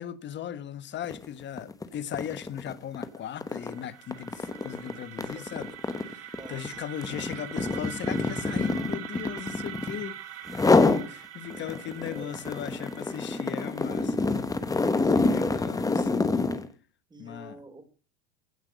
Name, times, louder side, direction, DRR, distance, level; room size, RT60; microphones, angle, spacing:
voice 1, 0.0-10.5 11.1-14.3 14.9-16.3 17.2-17.6, left 10 dB, 30° left, 1.3 m, -38 dB
sound 1, 1.0-1.3 1.6-10.0 10.5-11.1 11.5-16.7, left 3 dB, 10° left, 1.2 m, -26 dB
sound 2, 3.2-15.1, right 12 dB, 45° right, 1.7 m, -44 dB
voice 2, 5.2-5.5 6.4-6.9 7.2-7.3 11.5-11.8 12.0-12.4 15.0-15.6 17.1-17.8, right 2 dB, 10° right, 4.0 m, -47 dB
16.0 x 5.8 x 8.1 m
supercardioid pair, 115°, 34 cm